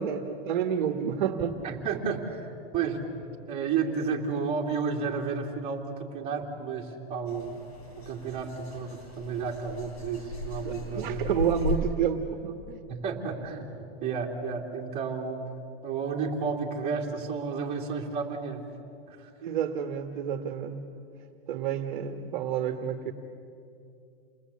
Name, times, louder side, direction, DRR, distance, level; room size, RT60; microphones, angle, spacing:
voice 1, 0.0-1.6 10.6-12.8 19.4-20.8 21.5-23.1, right 8 dB, 50° right, 6 dB, 1.5 m, -29 dB
voice 2, 1.6-7.6 8.0-11.3 12.9-13.7 14.0-15.4 15.8-18.6 19.1-19.3, right 5 dB, 20° right, -2 dB, 2.9 m, -32 dB
sound 1, 7.3-11.8, left 3 dB, 85° left, 7.7 m, -37 dB
29.0 x 20.0 x 8.5 m, 2.6 s
supercardioid pair, 165°, 31 cm